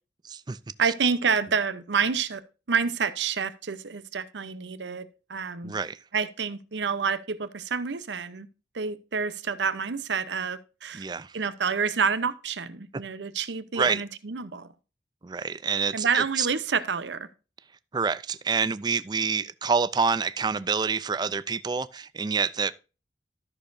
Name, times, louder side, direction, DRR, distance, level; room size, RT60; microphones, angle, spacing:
voice 1, 0.2-0.6 5.6-6.0 10.9-11.3 13.8-14.0 15.2-16.5 17.9-22.7, right 5 dB, 25° right, 0.4 m, -27 dB
voice 2, 0.8-2.4 2.7-5.7 6.1-8.5 8.7-11.1 11.3-14.7 15.9-17.3, right 6 dB, 90° right, 0.7 m, -28 dB
13.0 x 6.6 x 2.6 m
head